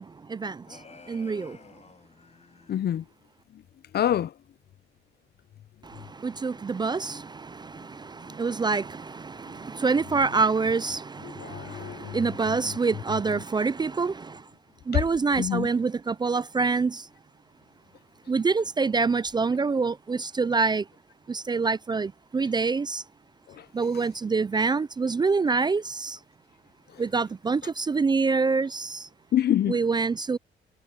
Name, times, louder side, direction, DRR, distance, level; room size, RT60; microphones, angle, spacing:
voice 1, 0.0-1.6 5.8-14.5 14.9-17.1 18.3-20.9 21.3-23.0 23.7-26.2 27.0-29.1 29.7-30.4, right 4 dB, 20° right, 0.4 m, -26 dB
sound 1, 0.6-2.8, left 5 dB, 35° left, 7.3 m, -51 dB
voice 2, 2.7-3.0 3.9-4.3 11.4-12.2 15.4-15.7 23.6-23.7 29.3-29.8, left 11 dB, 55° left, 0.6 m, -26 dB
cardioid pair, 90°, 20 cm